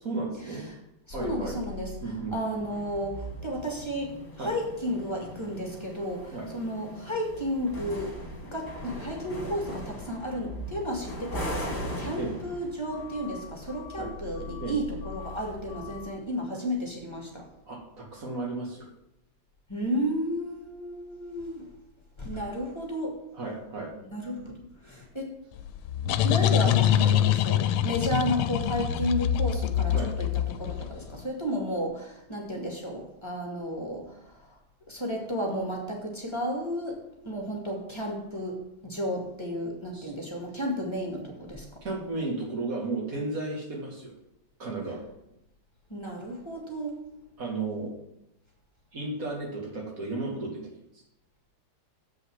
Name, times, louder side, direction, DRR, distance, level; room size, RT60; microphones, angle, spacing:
voice 1, 0.0-0.7 1.1-1.6 2.0-2.4 4.4-4.5 6.3-6.5 12.2-12.3 14.0-14.1 14.6-14.8 17.7-18.9 23.3-23.9 27.0-27.1 29.9-30.1 39.9-40.1 41.8-44.1 44.6-45.0 47.4-48.0 48.9-50.6, right 3 dB, 40° right, -1 dB, 2.7 m, -34 dB
sound 1, 1.1-16.1, left 1 dB, 35° left, 2.4 m, -40 dB
voice 2, 1.1-2.0 2.3-8.2 8.4-17.5 19.7-21.7 22.2-23.2 24.1-24.4 24.8-25.4 26.2-34.6 34.9-41.7 45.9-47.0, equal, 15° left, 0 dB, 1.9 m, -33 dB
sound 2, 25.6-31.1, left 11 dB, 80° left, 1.4 m, -25 dB
8.1 x 5.6 x 7.7 m, 0.84 s
omnidirectional pair, 2.4 m